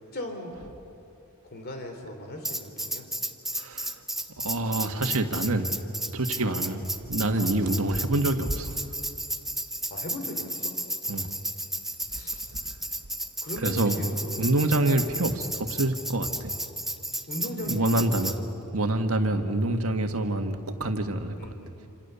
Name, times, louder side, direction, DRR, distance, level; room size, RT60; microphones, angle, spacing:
voice 1, 0.1-0.7 1.4-3.1 6.4-6.7 7.6-7.9 9.9-10.7 12.1-12.4 13.4-15.1 17.3-18.4 21.3-21.7, left 1 dB, 45° left, 4 dB, 3.4 m, -39 dB
Tambourine, 2.4-18.4, right 1 dB, ahead, 0.9 m, -33 dB
voice 2, 3.6-3.9 4.4-5.7 6.1-8.8 11.1-11.3 13.6-14.0 14.4-16.5 17.6-18.4 18.7-21.4, right 2 dB, 70° right, 6 dB, 1.7 m, -26 dB
27.5 x 27.0 x 7.0 m, 2.7 s
head